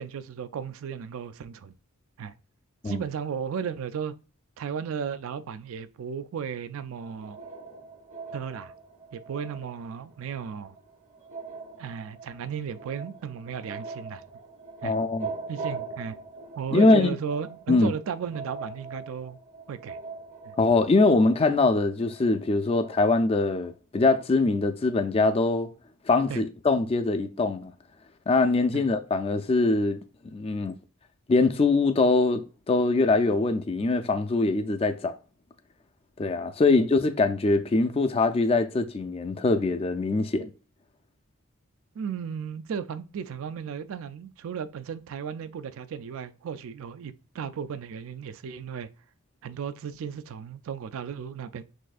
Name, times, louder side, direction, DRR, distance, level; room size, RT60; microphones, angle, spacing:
voice 1, 0.0-1.7 2.2-2.3 2.8-4.1 4.6-7.4 8.3-8.7 9.1-10.8 11.8-14.2 14.8-15.0 15.5-16.2 16.6-19.4 19.7-20.0 20.4-20.6 26.3-26.4 28.7-28.9 36.7-36.8 42.0-48.9 49.4-51.6, right 7 dB, 60° right, 0.3 m, -35 dB
sound 1, 7.0-23.7, right 4 dB, 35° right, 0.7 m, -42 dB
voice 2, 14.8-15.3 16.7-17.1 17.7-17.9 20.6-25.7 26.1-27.7 28.3-30.0 30.3-30.7 31.3-35.2 36.2-40.5, left 3 dB, 25° left, 0.3 m, -23 dB
6.2 x 2.6 x 2.4 m
head